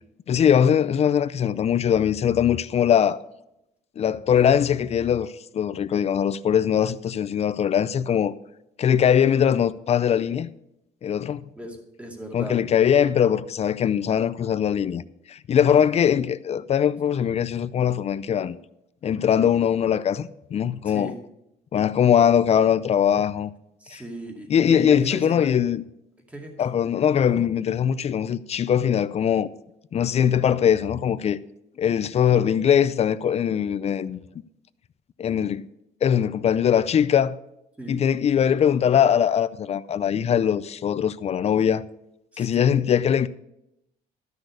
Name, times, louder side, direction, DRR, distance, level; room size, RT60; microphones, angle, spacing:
voice 1, 0.3-3.2 4.0-8.3 8.8-10.5 11.0-11.4 12.3-15.0 15.3-18.6 19.0-21.1 21.7-23.5 23.9-24.0 24.5-25.8 26.6-29.5 29.9-31.4 31.8-34.2 35.2-35.6 36.0-37.4 37.9-41.8 42.4-43.3, left 8 dB, 40° left, 0.5 m, -21 dB
voice 2, 11.6-12.6 15.7-16.0 20.8-21.2 23.8-25.6 26.3-26.6 37.8-38.0 42.3-42.8, right 1 dB, 10° right, 2.4 m, -37 dB
12.5 x 6.3 x 6.6 m
cardioid pair, 110°, 17 cm